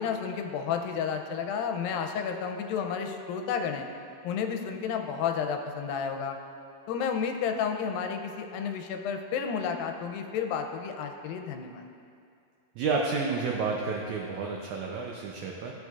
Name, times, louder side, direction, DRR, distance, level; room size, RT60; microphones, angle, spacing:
voice 1, 0.0-3.9 4.2-6.4 6.9-11.8, left 7 dB, 85° left, 5 dB, 2.3 m, -31 dB
voice 2, 12.8-15.7, right 4 dB, 90° right, 0 dB, 1.6 m, -30 dB
14.0 x 6.2 x 2.4 m, 2.4 s
omnidirectional pair, 4.1 m